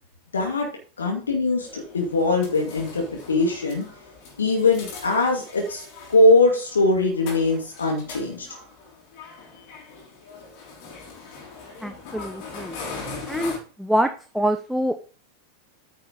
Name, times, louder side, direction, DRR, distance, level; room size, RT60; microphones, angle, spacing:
voice 1, 0.3-0.7 1.0-3.9 4.4-5.8 6.1-8.5, left 2 dB, 70° left, 0 dB, 2.4 m, -21 dB
sound 1, 1.6-13.6, left 4 dB, 45° left, 3.9 m, -40 dB
voice 2, 11.8-12.8 13.3-13.5 13.8-14.1 14.3-14.9, right 1 dB, ahead, 7 dB, 0.7 m, -24 dB
9.7 x 5.5 x 5.1 m, 0.38 s
figure-of-eight pair, 90°, 0 cm